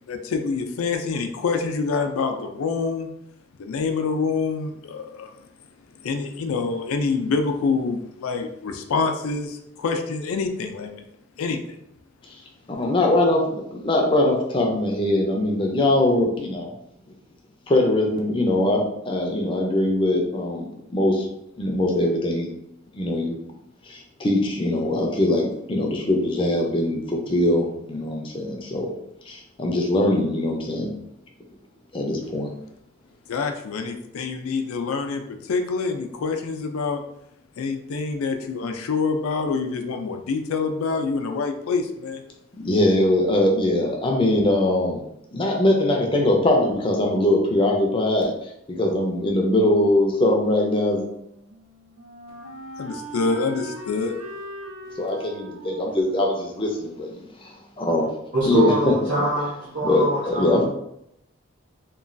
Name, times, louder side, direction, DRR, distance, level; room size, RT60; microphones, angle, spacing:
voice 1, 0.1-3.1 3.6-5.5 6.0-11.0 11.4-11.8 33.3-37.0 37.6-42.2 52.8-54.2, left 4 dB, 85° left, 5 dB, 0.4 m, -26 dB
voice 2, 12.7-16.7 17.7-21.3 21.6-22.5 22.9-23.4 23.9-28.9 29.3-30.9 31.9-32.5 42.5-45.0 45.3-48.3 48.7-51.0 55.0-57.1 57.4-58.1 58.5-58.7 59.8-60.6, left 1 dB, 25° left, 1 dB, 0.4 m, -22 dB
Wind instrument woodwind instrument, 51.1-57.9, right 1 dB, 85° right, 1.3 m, -41 dB
voice 3, 58.3-60.6, equal, 55° right, -9 dB, 0.8 m, -24 dB
3.0 x 2.2 x 2.5 m, 0.77 s
head